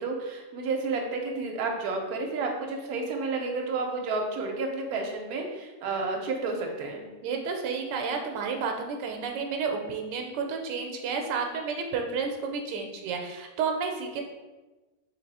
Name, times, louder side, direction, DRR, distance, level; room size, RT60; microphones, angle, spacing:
voice 1, 0.0-7.1, right 3 dB, 65° right, 2 dB, 1.1 m, -31 dB
voice 2, 7.2-14.2, right 5 dB, 90° right, 3 dB, 1.2 m, -31 dB
3.6 x 2.9 x 4.0 m, 1.2 s
omnidirectional pair, 1.9 m